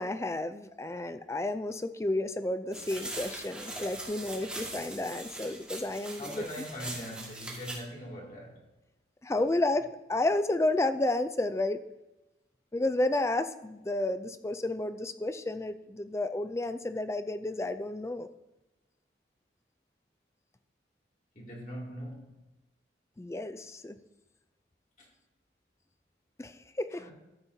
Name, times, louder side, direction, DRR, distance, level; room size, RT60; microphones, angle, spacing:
voice 1, 0.0-6.4 9.2-11.8 12.7-18.3 23.2-24.0 26.4-27.1, left 2 dB, 15° left, 10 dB, 0.3 m, -31 dB
sound 1, 2.7-7.8, right 2 dB, 5° right, 1.8 m, -41 dB
voice 2, 6.2-8.6 9.3-9.5 21.3-22.4 25.0-25.1 27.0-27.1, equal, 45° left, -3 dB, 2.5 m, -42 dB
13.5 x 7.4 x 2.7 m, 1.0 s
head